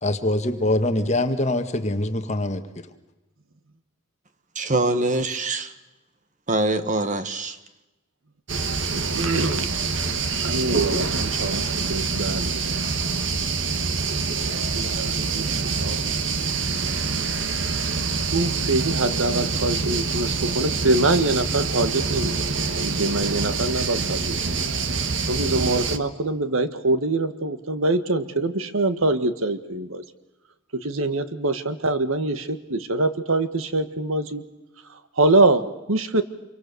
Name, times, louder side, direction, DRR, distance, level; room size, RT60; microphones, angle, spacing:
voice 1, 0.0-2.9, left 1 dB, 35° left, 1.7 m, -24 dB
voice 2, 4.5-5.7 6.5-7.6, right 2 dB, 35° right, 1.6 m, -24 dB
sound 1, 8.5-26.0, right 4 dB, 60° right, 1.5 m, -25 dB
voice 3, 9.1-10.1 10.4-12.8 14.7-16.0 18.3-22.3 22.8-24.3 25.3-30.0 30.7-34.4 35.2-35.6 35.9-36.2, right 2 dB, 80° right, 1.7 m, -24 dB
27.5 x 24.0 x 6.9 m
head